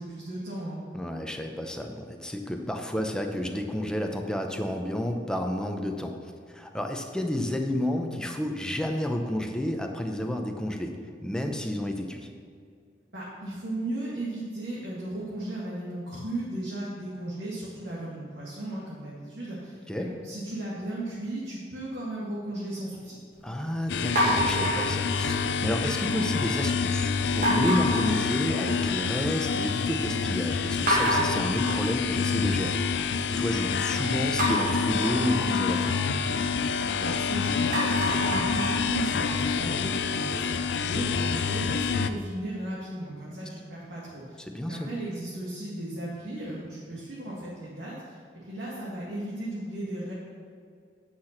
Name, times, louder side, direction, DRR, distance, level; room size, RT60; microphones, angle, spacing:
voice 1, 0.0-0.8 13.1-23.2 36.9-44.4 44.7-47.9 48.3-50.1, right 1 dB, 70° right, -7 dB, 2.1 m, -36 dB
voice 2, 0.9-6.2 6.5-11.0 11.2-12.3 19.9-20.1 23.4-32.8 33.4-36.0 44.5-44.9, left 1 dB, 5° left, 3 dB, 0.7 m, -30 dB
sound 1, 23.9-42.1, left 5 dB, 65° left, 0.5 m, -27 dB
sound 2, 24.2-25.6 26.0-26.5 27.4-29.0 29.3-29.8 30.2-30.3 30.9-33.0 34.4-37.2 37.6-40.5, equal, 45° right, 2.1 m, -30 dB
9.4 x 5.9 x 5.9 m, 2.3 s
head